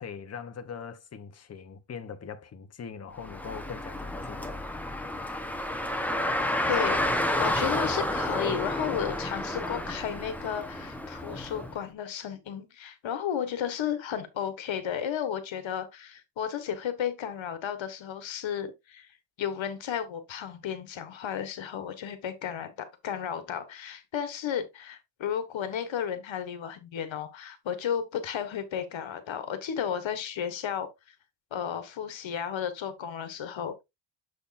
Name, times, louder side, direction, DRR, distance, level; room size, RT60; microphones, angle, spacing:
voice 1, 0.0-4.5, left 6 dB, 35° left, 0.8 m, -41 dB
Car, 3.2-11.7, left 1 dB, 5° left, 0.8 m, -30 dB
voice 2, 6.7-7.1 7.4-31.1 31.5-33.8, left 8 dB, 75° left, 1.4 m, -33 dB
7.1 x 6.4 x 2.5 m
wide cardioid pair, 145°, 47 cm